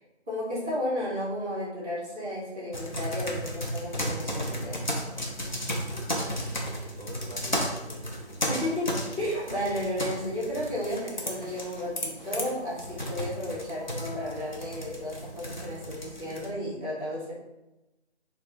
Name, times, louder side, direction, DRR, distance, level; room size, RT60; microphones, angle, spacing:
voice 1, 0.3-4.8 8.5-17.3, left 1 dB, 10° left, -16 dB, 0.9 m, -33 dB
sound 1, 2.7-16.5, equal, 45° left, 0.6 m, -34 dB
voice 2, 5.9-8.7 9.7-9.8, right 1 dB, 40° right, -3 dB, 0.6 m, -47 dB
3.3 x 2.3 x 4.1 m, 0.98 s
figure-of-eight pair, 175°, 34 cm